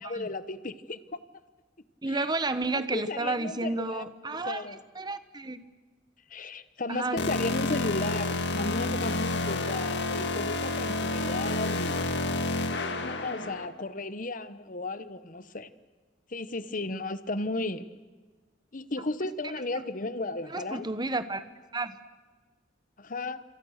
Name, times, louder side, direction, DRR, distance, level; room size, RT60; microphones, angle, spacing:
voice 1, 0.0-1.2 2.1-2.3 2.7-4.0 4.4-4.8 6.3-12.2 12.9-15.7 16.3-17.9 18.7-20.9 23.0-23.4, left 2 dB, 45° left, 13 dB, 1.1 m, -35 dB
voice 2, 2.0-4.6 4.9-5.6 6.9-7.2 20.5-21.4 21.7-22.0, right 3 dB, 25° right, 12 dB, 1.2 m, -31 dB
sound 1, 7.2-13.7, left 2 dB, 65° left, 2.0 m, -29 dB
28.0 x 27.0 x 6.6 m, 1.3 s
head